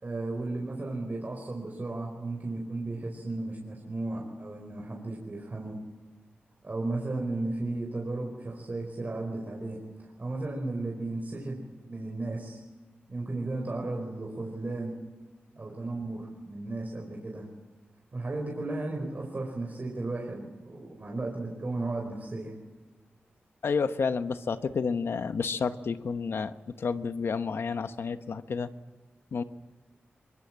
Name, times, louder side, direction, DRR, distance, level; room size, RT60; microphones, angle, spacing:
voice 1, 0.0-5.8 6.6-9.8 10.2-11.6 11.9-12.6 13.1-14.9 15.6-17.5 18.1-22.5, right 2 dB, 45° right, 0 dB, 4.6 m, -34 dB
voice 2, 23.6-28.7 29.3-29.4, left 5 dB, 75° left, 10 dB, 1.1 m, -30 dB
23.0 x 23.0 x 7.6 m, 1.3 s
cardioid pair, 70°, 4 cm